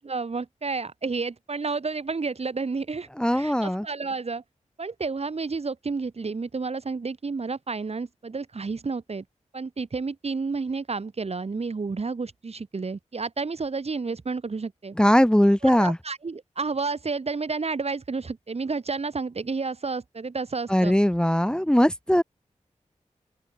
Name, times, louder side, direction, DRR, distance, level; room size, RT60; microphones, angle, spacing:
voice 1, 0.0-4.4 4.8-9.2 9.5-14.9 15.6-20.9, right 4 dB, 55° right, 1.7 m, -31 dB
voice 2, 3.2-3.8 15.0-16.0 20.7-22.2, equal, 5° left, 1.2 m, -20 dB
open air
cardioid pair, 50°, 13 cm